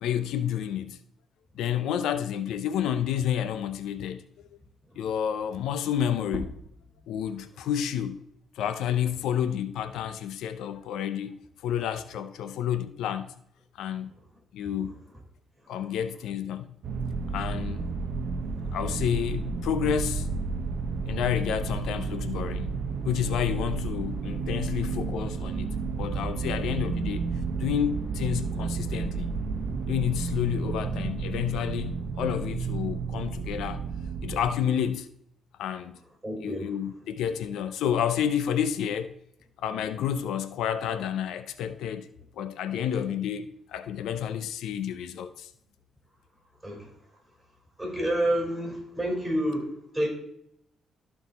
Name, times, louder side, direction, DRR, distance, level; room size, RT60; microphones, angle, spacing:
voice 1, 0.0-1.0 1.5-4.2 5.0-6.5 7.1-8.2 8.5-13.3 13.8-14.1 14.5-15.0 15.7-16.7 17.3-17.9 18.7-20.3 21.1-22.7 23.0-25.7 26.0-27.2 27.6-29.3 29.9-33.8 34.2-35.1 35.6-36.0 36.4-39.1 39.6-42.1 42.4-45.5, left 9 dB, 80° left, 0.5 m, -30 dB
sound 1, 6.2-11.4 11.8-13.6, left 1 dB, 15° left, 1.6 m, -45 dB
sound 2, 16.8-34.5, right 4 dB, 70° right, 0.8 m, -31 dB
voice 2, 36.2-36.7 46.6-46.9 47.8-50.1, right 1 dB, 5° right, 4.0 m, -29 dB
13.0 x 4.5 x 4.1 m
cardioid pair, 90°, 0 cm